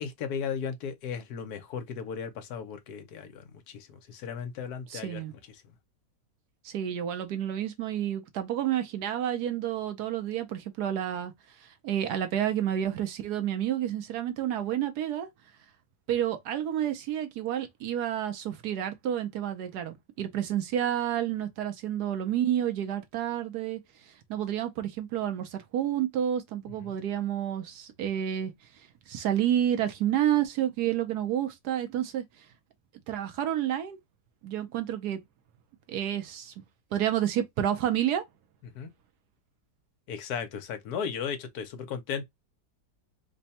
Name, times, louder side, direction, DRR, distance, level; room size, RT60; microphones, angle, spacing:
voice 1, 0.0-5.6 26.7-27.0 38.6-38.9 40.1-42.2, left 7 dB, 65° left, 1.2 m, -36 dB
voice 2, 4.9-5.3 6.6-11.3 11.6-15.3 16.1-23.8 24.1-28.5 29.1-32.5 33.1-34.0 34.4-35.2 35.9-36.5 36.9-38.2, right 10 dB, 70° right, 1.1 m, -30 dB
3.4 x 2.2 x 4.0 m
omnidirectional pair, 1.9 m